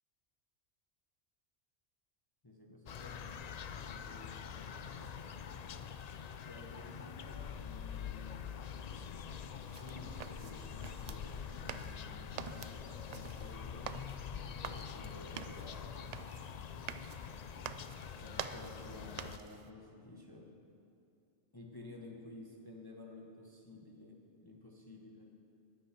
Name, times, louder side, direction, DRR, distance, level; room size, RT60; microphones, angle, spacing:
voice 1, 2.4-5.9 6.4-8.4 9.7-14.0 14.6-16.1 18.1-20.5 21.5-25.3, left 2 dB, 20° left, 0 dB, 1.0 m, -53 dB
sound 1, 2.9-19.4, left 7 dB, 60° left, 0.4 m, -45 dB
sound 2, 9.6-19.7, right 7 dB, 85° right, 0.3 m, -48 dB
14.0 x 10.0 x 5.8 m, 2.7 s
omnidirectional pair, 1.2 m